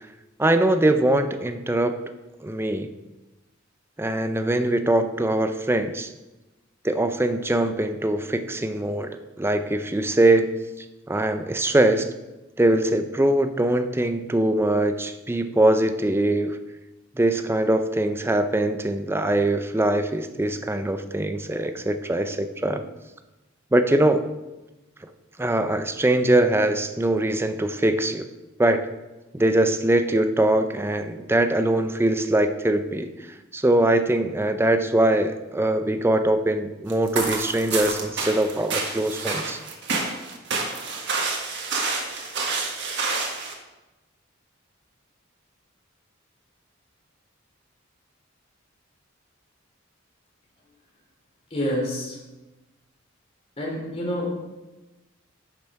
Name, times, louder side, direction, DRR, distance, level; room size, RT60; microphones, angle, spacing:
voice 1, 0.4-2.0 2.4-2.9 4.0-6.1 6.8-9.1 9.4-10.5 11.1-12.1 12.6-16.6 17.2-22.8 23.7-24.3 25.4-28.3 28.6-28.9 29.3-33.1 33.5-39.6, right 1 dB, 10° right, 9 dB, 0.5 m, -22 dB
sound 1, 36.9-43.5, right 4 dB, 60° right, 1.5 m, -28 dB
voice 2, 51.5-52.2 53.6-54.3, equal, 30° left, -2 dB, 2.9 m, -27 dB
10.5 x 6.0 x 4.7 m, 1.1 s
head